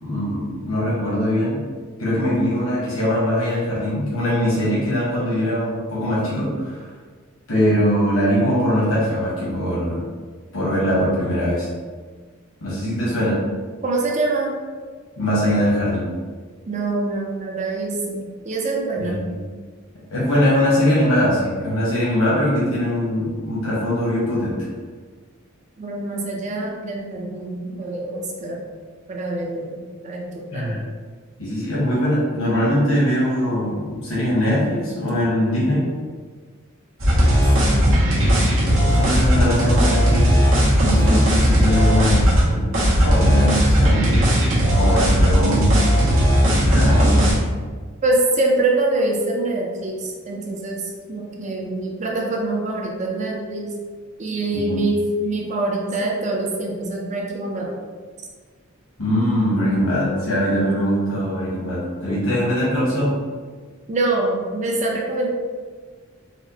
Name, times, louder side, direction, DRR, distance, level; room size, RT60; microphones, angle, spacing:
voice 1, 0.0-1.6 2.0-6.9 7.5-10.0 10.5-11.7 12.6-13.4 15.2-16.1 19.0-19.4 20.1-24.6 30.5-30.8 31.4-35.9 38.8-40.3 40.8-42.7 43.0-44.0 44.7-45.8 46.4-47.3 54.5-54.8 59.0-63.2, equal, 85° left, -8 dB, 1.1 m, -21 dB
voice 2, 13.8-14.5 16.7-19.2 25.8-28.6 29.1-29.8 30.0-30.7 37.6-38.0 48.0-50.8 51.1-53.7 54.2-57.7 63.9-65.3, right 2 dB, 35° right, -1 dB, 0.5 m, -24 dB
sound 1, 37.0-42.4 42.7-47.3, equal, 70° right, 1.1 m, -16 dB
4.3 x 2.1 x 2.7 m, 1.5 s
head